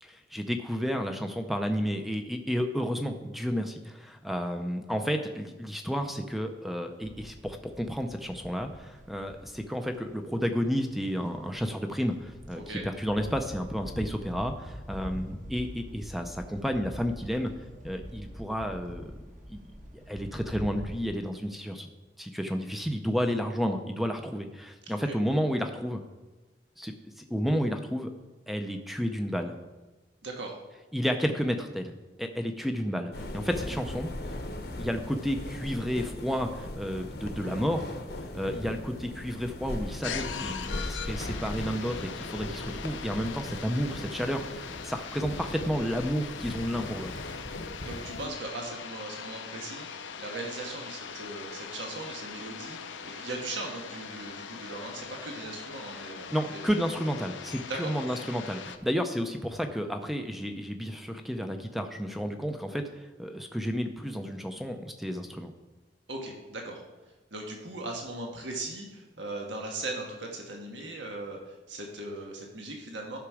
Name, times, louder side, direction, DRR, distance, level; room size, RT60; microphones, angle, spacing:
voice 1, 0.0-17.5 17.8-19.1 19.5-19.6 20.1-21.9 22.2-26.0 26.8-28.1 28.5-29.5 30.9-34.4 34.8-37.9 38.3-47.1 56.3-65.5, equal, ahead, 6 dB, 0.5 m, -31 dB
sound 1, 7.0-21.1, equal, 40° right, 1.5 m, -45 dB
voice 2, 30.2-30.5 47.8-56.6 57.7-57.9 66.1-66.8 67.3-73.2, right 2 dB, 80° right, 0 dB, 1.5 m, -39 dB
sound 2, 33.1-48.3, left 1 dB, 55° left, 0.9 m, -39 dB
sound 3, 40.0-58.8, left 6 dB, 85° left, 0.6 m, -41 dB
11.5 x 6.0 x 4.8 m, 1.2 s
head